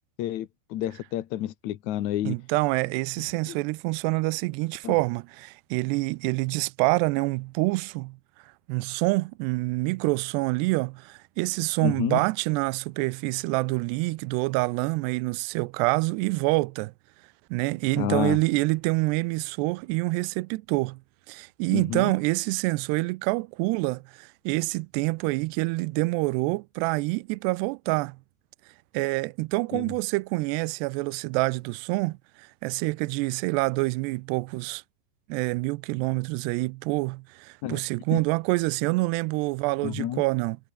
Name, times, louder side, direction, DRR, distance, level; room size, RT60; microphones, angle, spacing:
voice 1, 0.2-2.4 3.5-3.6 4.8-5.0 11.8-12.2 18.0-18.4 21.7-22.1 29.7-29.9 37.6-37.8 38.1-38.2 39.8-40.2, left 12 dB, 70° left, 1.7 m, -29 dB
voice 2, 2.3-8.2 8.7-16.9 17.5-21.0 21.3-28.2 28.9-34.8 35.3-40.6, right 24 dB, 80° right, 2.5 m, -27 dB
omnidirectional pair, 5.1 m